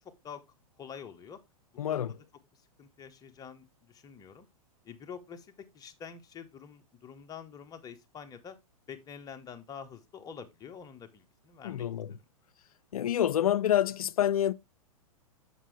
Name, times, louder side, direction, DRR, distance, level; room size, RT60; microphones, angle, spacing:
voice 1, 0.0-0.4 0.8-1.4 1.9-2.1 2.5-4.5 4.8-8.6 8.9-11.8, left 7 dB, 20° left, 1.1 m, -47 dB
voice 2, 1.8-2.1 11.6-12.1 12.9-14.5, left 11 dB, 70° left, 0.5 m, -27 dB
7.3 x 6.2 x 3.2 m
figure-of-eight pair, 110°, 19 cm